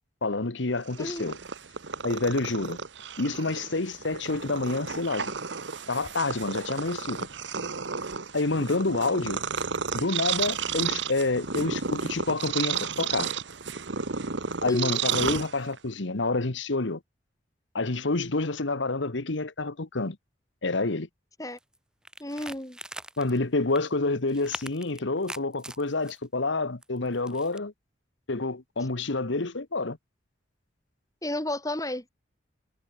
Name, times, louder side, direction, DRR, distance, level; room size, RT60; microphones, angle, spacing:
voice 1, 0.2-1.4 2.0-2.8 3.2-5.3 5.9-7.3 8.3-9.4 9.9-13.3 14.6-17.0 17.7-20.2 20.6-21.1 23.2-27.7 28.3-30.0, left 3 dB, 75° left, 1.3 m, -28 dB
Purr, 0.8-15.9, right 6 dB, 70° right, 1.3 m, -32 dB
voice 2, 14.7-15.0 21.4-21.6 22.2-22.8 31.2-32.0, left 1 dB, 15° left, 2.7 m, -32 dB
sound 1, 21.6-21.8 22.0-23.4 23.7-23.9 24.3-26.2 26.8-27.6, right 1 dB, 5° right, 0.9 m, -41 dB
head